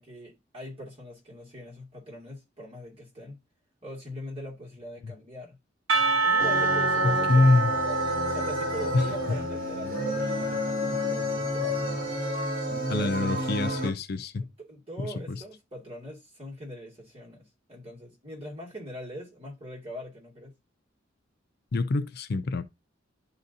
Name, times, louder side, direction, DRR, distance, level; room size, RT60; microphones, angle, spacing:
voice 1, 0.0-3.4 3.8-5.6 6.2-11.9 12.9-13.9 14.4-20.5, equal, 30° right, 2.3 m, -42 dB
Percussion, 5.9-10.7, right 3 dB, 80° right, 0.7 m, -27 dB
sound 1, 6.4-13.9, left 1 dB, 50° right, 2.1 m, -30 dB
voice 2, 7.0-7.7 8.9-9.1 12.9-14.5 15.0-15.4 21.7-22.6, left 2 dB, 55° left, 0.5 m, -25 dB
11.0 x 4.0 x 2.7 m
head